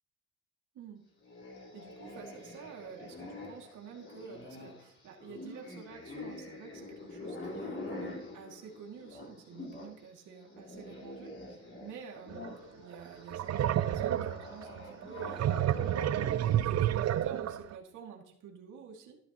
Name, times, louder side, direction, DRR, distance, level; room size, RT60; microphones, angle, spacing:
sound 1, 1.2-10.0 10.3-17.1, left 2 dB, 40° left, 4.3 m, -45 dB
voice 1, 1.7-19.2, right 6 dB, 80° right, 0 dB, 2.4 m, -49 dB
sound 2, 12.3-12.5 12.9-17.8, right 11 dB, 60° right, 0.6 m, -30 dB
12.5 x 12.0 x 3.0 m, 0.72 s
cardioid pair, 90°, 30 cm